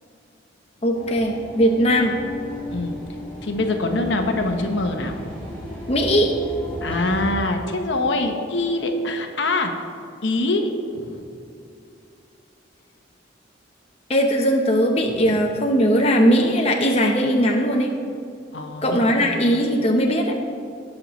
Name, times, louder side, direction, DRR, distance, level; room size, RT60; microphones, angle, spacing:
voice 1, 0.8-2.1 5.9-6.3 14.1-17.9 18.8-20.3, equal, 30° left, 1 dB, 0.7 m, -19 dB
sound 1, 0.9-7.3, equal, 5° left, 2.4 m, -35 dB
voice 2, 3.4-5.1 6.8-9.7 10.2-11.3 15.1-15.3 18.5-19.6, left 2 dB, 65° left, 4 dB, 0.9 m, -24 dB
18.5 x 6.5 x 3.1 m, 2.5 s
head